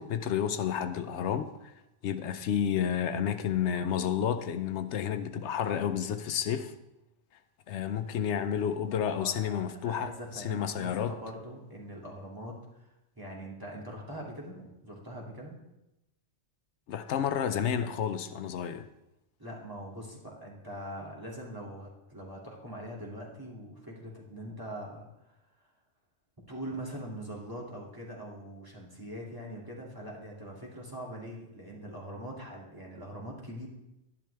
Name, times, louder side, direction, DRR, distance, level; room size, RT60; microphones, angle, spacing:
voice 1, 0.0-1.5 2.0-6.7 7.7-11.2 16.9-18.9, left 8 dB, 80° left, 0.9 m, -30 dB
voice 2, 9.1-15.5 19.4-25.4 26.5-33.7, equal, 20° right, 2.4 m, -42 dB
12.0 x 10.5 x 3.4 m
omnidirectional pair, 1.2 m